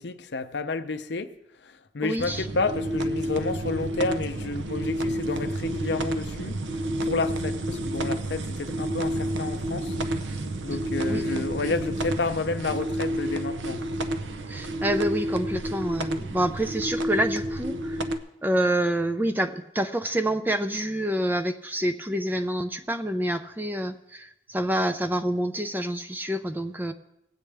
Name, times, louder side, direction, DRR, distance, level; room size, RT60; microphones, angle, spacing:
voice 1, 0.0-1.3 1.6-6.6 7.0-9.9 10.6-13.9, left 3 dB, 70° left, 0.6 m, -30 dB
voice 2, 2.0-2.5 11.1-11.2 14.5-18.1 18.4-26.9, right 1 dB, 10° right, 0.4 m, -27 dB
sound 1, 2.2-18.2, right 1 dB, 85° right, 0.7 m, -30 dB
19.0 x 8.4 x 3.4 m
head